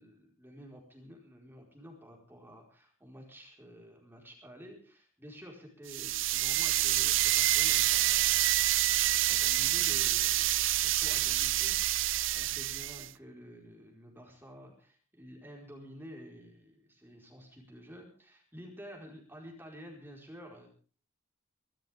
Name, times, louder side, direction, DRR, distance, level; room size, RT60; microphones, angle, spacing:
voice 1, 0.0-20.7, equal, 10° right, 0 dB, 4.7 m, -51 dB
sound 1, 5.9-13.1, right 14 dB, 70° right, 0.7 m, -27 dB
25.5 x 13.0 x 3.6 m, 0.40 s
head